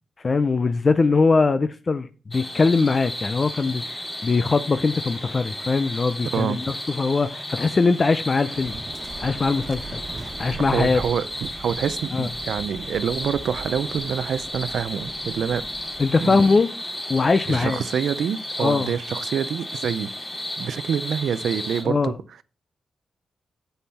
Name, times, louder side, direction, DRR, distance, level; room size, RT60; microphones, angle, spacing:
voice 1, 0.2-3.8 4.2-8.8 9.2-10.0 10.4-11.0 12.1-12.3 16.0-16.7 17.1-17.8 18.6-18.9 21.8-22.2, left 4 dB, 40° left, 0.6 m, -21 dB
sound 1, 2.3-21.8, left 1 dB, 20° left, 2.3 m, -34 dB
voice 2, 6.3-6.7 10.7-15.7 16.2-16.6 17.5-20.1 20.6-22.1, right 8 dB, 80° right, 0.5 m, -26 dB
Waves surf, 8.5-16.1, right 4 dB, 50° right, 1.3 m, -40 dB
7.9 x 5.5 x 4.2 m
cardioid pair, 80°, 0 cm